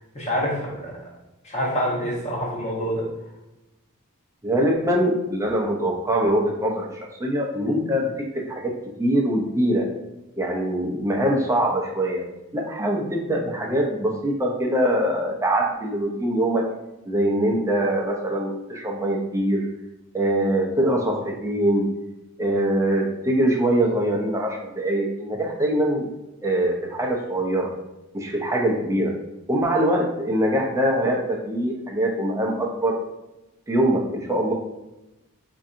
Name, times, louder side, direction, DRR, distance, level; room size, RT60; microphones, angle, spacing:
voice 1, 0.1-1.0 1.4-3.1, equal, 30° left, -3 dB, 0.9 m, -26 dB
voice 2, 4.4-9.9 10.4-12.2 12.5-16.7 17.0-19.7 20.1-21.9 22.4-26.1 26.4-27.7 28.1-29.2 29.5-33.0 33.7-34.5, right 1 dB, 15° right, -1 dB, 0.5 m, -23 dB
4.5 x 2.7 x 2.5 m, 0.97 s
head